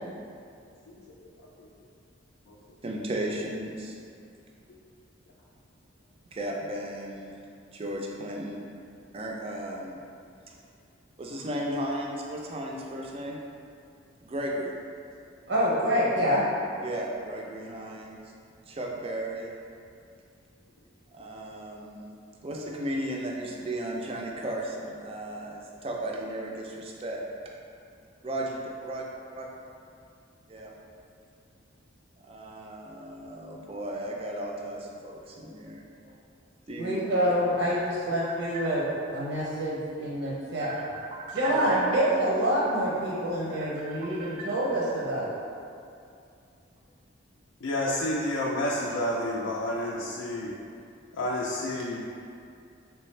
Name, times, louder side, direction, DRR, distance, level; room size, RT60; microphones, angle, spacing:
voice 1, 0.9-1.7 2.5-2.6 4.7-4.8 47.6-50.5 51.1-52.0, left 1 dB, 75° left, -4 dB, 0.4 m, -30 dB
voice 2, 2.8-4.0 6.3-7.4 7.7-8.6 9.1-10.0 10.5-10.6 11.2-13.4 14.2-14.7 16.8-18.2 18.7-19.5 21.1-22.1 22.4-27.2 28.2-29.0 29.3-29.5 30.5-30.7 32.2-35.8 36.7-37.0 38.2-38.6 40.6-41.7 43.5-44.5, right 1 dB, 30° right, -1 dB, 0.3 m, -35 dB
voice 3, 15.5-16.4 36.8-38.8 39.1-40.7 41.3-45.4, equal, 80° right, -6 dB, 0.7 m, -26 dB
3.4 x 3.2 x 3.1 m, 2.5 s
head